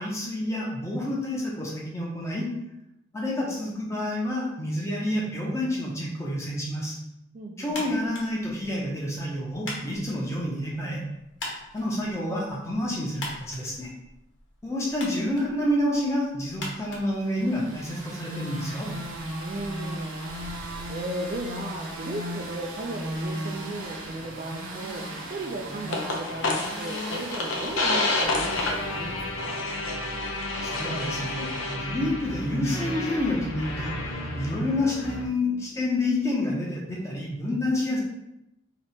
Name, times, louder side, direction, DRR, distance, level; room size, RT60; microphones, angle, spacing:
voice 1, 0.0-2.5 3.1-7.0 7.6-11.0 11.7-13.9 14.6-18.9 30.6-33.9 34.4-38.0, left 1 dB, 15° left, -4 dB, 0.7 m, -28 dB
voice 2, 7.3-7.9 19.4-20.3 20.9-29.6, right 1 dB, 40° right, 2 dB, 0.3 m, -36 dB
sound 1, 7.7-17.9, left 2 dB, 60° left, 1.0 m, -43 dB
sound 2, 17.1-30.0, equal, 85° right, 0.9 m, -37 dB
sound 3, 25.9-35.2, left 2 dB, 80° left, 0.7 m, -30 dB
2.9 x 2.9 x 4.3 m, 0.88 s
head